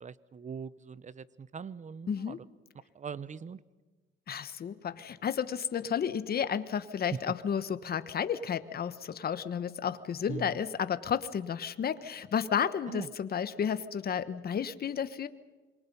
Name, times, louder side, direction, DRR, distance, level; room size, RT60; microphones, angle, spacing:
voice 1, 0.0-2.4 2.9-3.6 7.1-7.2 10.3-10.6 12.9-13.1, right 6 dB, 40° right, 17 dB, 1.0 m, -41 dB
voice 2, 2.1-2.4 4.3-15.3, left 8 dB, 50° left, 13 dB, 1.2 m, -32 dB
27.0 x 23.5 x 5.5 m, 1.3 s
cardioid pair, 90°, 20 cm